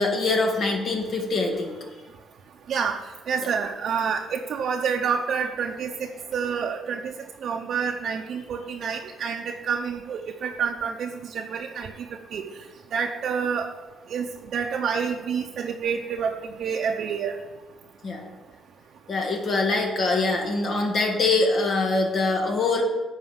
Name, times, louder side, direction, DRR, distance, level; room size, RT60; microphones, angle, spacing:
voice 1, 0.0-1.8 3.4-3.5 18.0-18.2 19.1-22.8, left 3 dB, 55° left, 1 dB, 2.0 m, -24 dB
voice 2, 3.3-7.1 7.4-11.9 12.3-12.4 12.9-13.7 14.1-14.3 14.5-16.3 16.6-17.3, right 6 dB, 65° right, 1 dB, 0.7 m, -28 dB
8.6 x 4.9 x 7.4 m, 1.2 s
cardioid pair, 90°, 0 cm